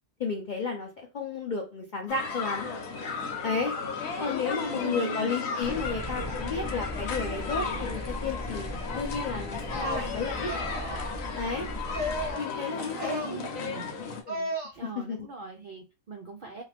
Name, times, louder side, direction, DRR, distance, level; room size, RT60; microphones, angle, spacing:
voice 1, 0.2-2.7 3.4-3.7 4.2-8.7 9.0-10.5 11.4-11.7 12.4-13.4 14.3-14.5 15.1-15.3, left 4 dB, 60° left, 2 dB, 0.5 m, -32 dB
sound 1, 2.1-14.2, left 5 dB, 80° left, 1.1 m, -35 dB
voice 2, 4.7-5.3 13.2-13.9 14.8-16.6, right 4 dB, 65° right, 2 dB, 0.5 m, -40 dB
sound 2, 5.6-12.3, equal, 20° left, 0.8 m, -38 dB
sound 3, 9.6-10.1 10.5-11.2 11.9-12.5 12.9-13.4 14.3-14.7, equal, 25° right, 0.9 m, -34 dB
2.6 x 2.4 x 3.2 m, 0.28 s
omnidirectional pair, 1.4 m